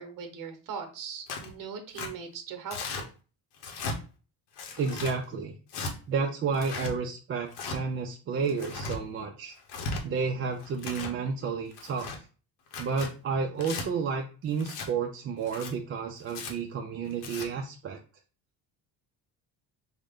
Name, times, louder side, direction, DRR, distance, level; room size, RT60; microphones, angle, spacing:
voice 1, 0.0-3.1, right 6 dB, 55° right, 5 dB, 0.9 m, -40 dB
Tearing, 1.3-1.5 1.9-2.1 2.7-3.0 3.6-4.0 4.6-5.1 5.7-5.9 6.5-6.9 7.5-7.8 8.4-9.0 9.6-10.0 10.6-11.1 11.7-12.2 12.7-13.1 13.6-13.8 14.6-14.9 15.4-15.7 16.3-16.5 17.1-17.5, left 3 dB, 75° left, 0.9 m, -36 dB
voice 2, 4.8-5.5 6.1-9.6 10.0-12.2 12.8-18.0, right 5 dB, 35° right, 3 dB, 0.4 m, -31 dB
3.6 x 2.1 x 3.5 m, 0.35 s
cardioid pair, 130°, 39 cm